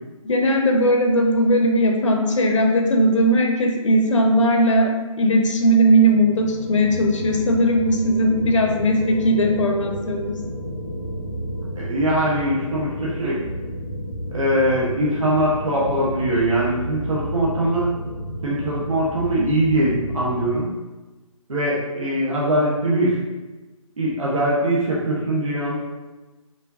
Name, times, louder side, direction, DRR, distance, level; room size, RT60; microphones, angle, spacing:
voice 1, 0.2-4.9 5.2-10.4, equal, 60° left, 2 dB, 0.7 m, -18 dB
sound 1, 5.6-20.5, equal, 15° left, 0.6 m, -32 dB
voice 2, 11.8-13.4 14.3-17.9 18.4-20.7 21.5-23.2 24.0-25.8, right 1 dB, 65° right, -6 dB, 1.2 m, -22 dB
5.4 x 2.7 x 2.7 m, 1.2 s
figure-of-eight pair, 155°, 18 cm